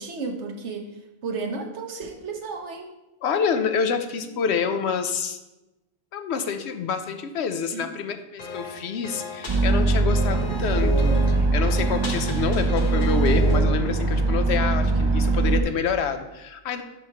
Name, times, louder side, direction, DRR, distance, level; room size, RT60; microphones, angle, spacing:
voice 1, 0.0-2.9 4.2-4.4 7.7-7.9, right 4 dB, 70° right, 3 dB, 1.2 m, -33 dB
voice 2, 3.2-5.4 6.1-16.8, left 6 dB, 70° left, 8 dB, 0.8 m, -27 dB
sound 1, 8.4-13.6, left 3 dB, 45° left, 1.1 m, -34 dB
sound 2, 9.5-15.6, right 3 dB, 50° right, 0.3 m, -21 dB
11.0 x 4.7 x 2.9 m, 0.97 s
omnidirectional pair, 1.2 m